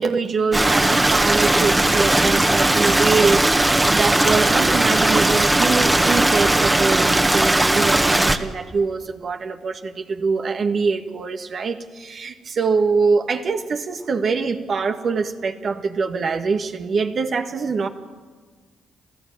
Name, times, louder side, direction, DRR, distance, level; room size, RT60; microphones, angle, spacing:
voice 1, 0.0-17.9, right 4 dB, 55° right, 5 dB, 1.7 m, -24 dB
Stream, 0.5-8.4, right 1 dB, 20° right, 1.8 m, -18 dB
28.0 x 14.5 x 9.2 m, 1.5 s
hypercardioid pair, 45°, 0 cm